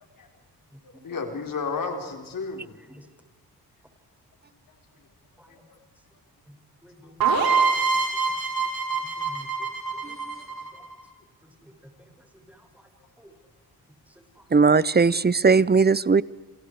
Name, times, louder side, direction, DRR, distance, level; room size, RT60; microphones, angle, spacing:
voice 1, 0.8-2.7 5.5-5.8, left 4 dB, 55° left, 4.9 m, -33 dB
voice 2, 6.8-7.6 7.9-8.4 8.9-10.1 10.7-10.8 11.6-11.7 12.0-12.9 13.2-13.3 14.4-14.8, equal, 5° right, 7.0 m, -51 dB
sound 1, 7.2-10.9, right 5 dB, 60° right, 7.1 m, -24 dB
voice 3, 14.5-16.2, right 4 dB, 25° right, 0.8 m, -18 dB
28.5 x 27.5 x 5.0 m
cardioid pair, 65°, 39 cm